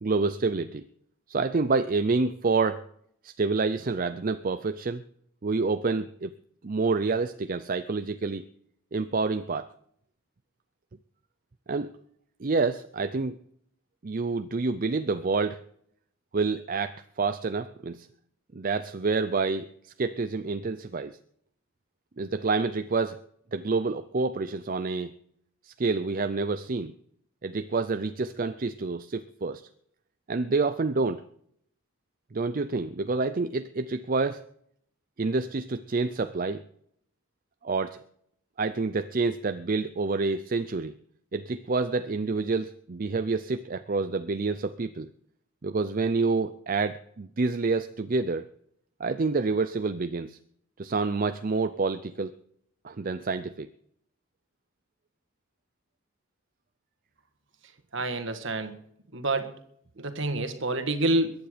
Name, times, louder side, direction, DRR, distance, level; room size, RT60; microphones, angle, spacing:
voice 1, 0.0-0.8 1.3-2.8 3.2-5.0 5.4-6.3 6.6-8.4 8.9-9.7 11.7-11.9 12.4-13.4 14.0-15.6 16.3-18.1 18.5-21.2 22.2-23.2 23.5-25.1 25.6-26.9 27.4-29.7 30.3-31.2 32.3-34.4 35.2-36.6 37.6-38.0 38.6-40.9 41.3-45.1 45.6-48.5 49.0-50.4 50.8-52.3 52.8-53.7, right 4 dB, 40° right, 11 dB, 0.5 m, -28 dB
voice 2, 57.9-58.7 59.1-59.5 60.0-61.3, right 2 dB, 60° right, 8 dB, 1.6 m, -27 dB
22.0 x 9.4 x 5.1 m, 0.69 s
head